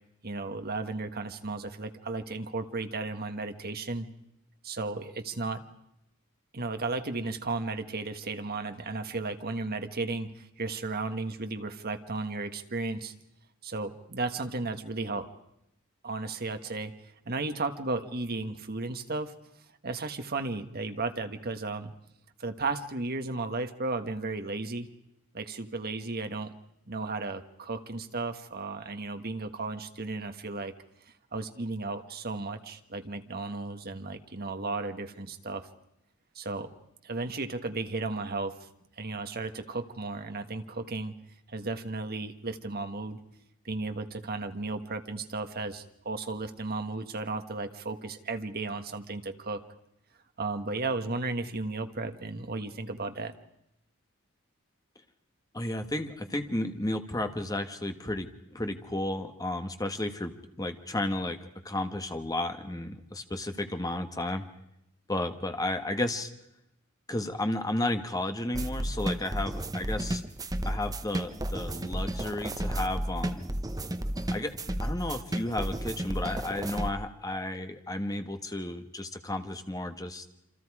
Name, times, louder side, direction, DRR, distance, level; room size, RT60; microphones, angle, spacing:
voice 1, 0.2-4.1 4.6-5.6 6.5-13.1 13.6-15.3 16.0-16.9 17.2-19.3 19.8-21.9 22.4-24.9 25.3-26.5 26.9-30.8 31.3-35.7 36.3-36.7 37.0-38.7 39.0-41.1 41.5-43.2 43.6-49.6 50.4-53.3, right 3 dB, 45° right, 7 dB, 1.4 m, -34 dB
voice 2, 55.5-61.4 61.6-64.5 65.1-66.3 67.1-70.2 70.6-73.5 74.3-80.2, left 1 dB, 15° left, 7 dB, 1.4 m, -33 dB
sound 1, 68.5-76.9, right 1 dB, 15° right, 0.9 m, -33 dB
27.5 x 25.5 x 4.9 m, 0.83 s
head